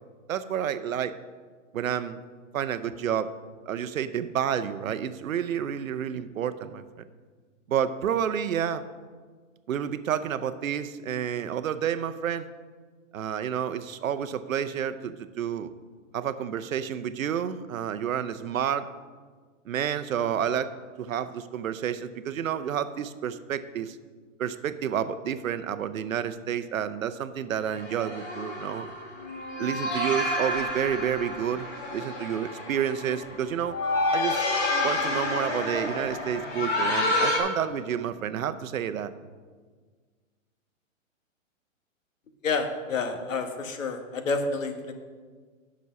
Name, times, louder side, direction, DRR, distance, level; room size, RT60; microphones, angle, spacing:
voice 1, 0.3-1.2 1.7-2.2 2.5-3.3 3.7-6.8 7.7-8.8 9.7-12.5 13.1-15.7 16.1-18.9 19.7-20.7 21.0-24.0 24.4-28.9 29.6-33.8 34.1-34.4 34.8-39.1, right 9 dB, 85° right, 12 dB, 0.7 m, -30 dB
sound 1, 27.6-37.4, left 2 dB, 55° left, 2.6 m, -29 dB
voice 2, 42.4-44.9, left 4 dB, 70° left, 6 dB, 1.4 m, -29 dB
8.3 x 6.2 x 5.8 m, 1.5 s
hypercardioid pair, 160°, 40 cm